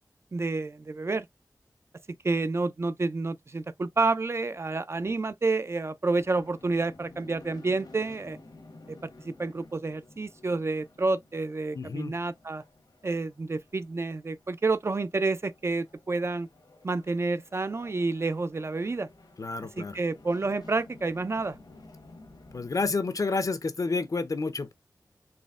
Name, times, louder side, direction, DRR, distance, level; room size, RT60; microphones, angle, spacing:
voice 1, 0.3-1.3 2.1-8.4 8.9-12.6 13.0-16.5 16.8-19.1 19.8-21.6, right 3 dB, 40° right, 0.3 m, -29 dB
sound 1, 6.1-22.9, left 2 dB, 80° left, 1.1 m, -53 dB
voice 2, 11.7-12.1 19.4-20.0 22.5-24.7, left 3 dB, 55° left, 0.5 m, -30 dB
4.2 x 2.0 x 3.5 m
wide cardioid pair, 80°, 7 cm